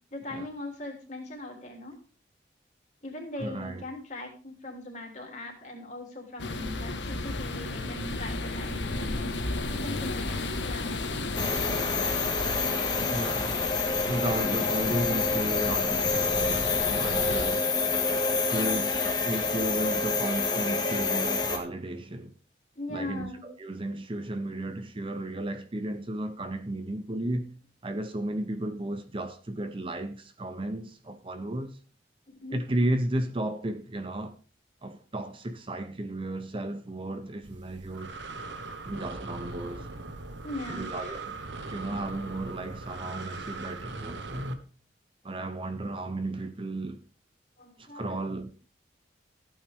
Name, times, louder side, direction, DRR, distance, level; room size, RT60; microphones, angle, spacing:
voice 1, 0.1-1.9 3.0-9.4 9.7-10.9 22.7-23.4 32.4-32.6 40.4-41.2 47.6-48.2, left 2 dB, 40° left, 3.2 m, -40 dB
voice 2, 3.4-3.8 13.1-13.6 14.0-17.8 18.5-22.3 22.9-27.6 27.8-31.8 32.5-34.4 34.8-38.2 38.9-39.9 40.7-41.4 41.7-44.6 45.2-47.0 47.8-48.5, right 1 dB, 30° right, 0.7 m, -34 dB
sound 1, 6.4-17.5, left 2 dB, 75° left, 1.5 m, -34 dB
sound 2, 11.4-21.6, left 4 dB, 20° left, 1.8 m, -27 dB
Breathing, 37.4-44.5, right 3 dB, 75° right, 1.2 m, -40 dB
15.0 x 8.8 x 3.5 m
head